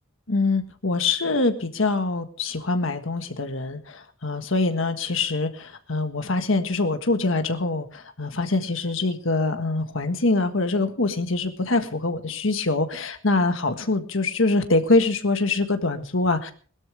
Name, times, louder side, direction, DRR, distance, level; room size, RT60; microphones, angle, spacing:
voice 1, 0.3-16.5, left 3 dB, 70° left, 8 dB, 1.6 m, -24 dB
21.0 x 13.0 x 3.4 m, 0.42 s
head